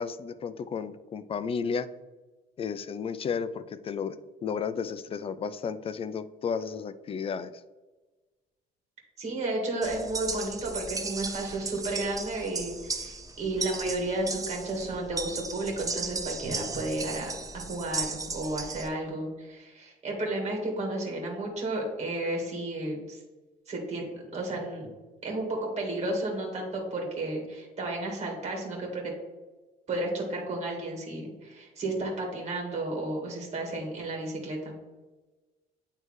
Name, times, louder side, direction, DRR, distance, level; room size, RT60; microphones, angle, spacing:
voice 1, 0.0-1.9 2.6-4.2 4.4-7.5, left 6 dB, 35° left, 13 dB, 0.4 m, -33 dB
voice 2, 9.2-23.2 23.7-24.9 25.2-29.1 29.9-34.7, right 2 dB, 40° right, 0 dB, 1.9 m, -32 dB
sound 1, 9.8-18.9, right 3 dB, 20° right, 0.6 m, -36 dB
9.3 x 3.3 x 3.2 m, 1.2 s
cardioid pair, 110°, 17 cm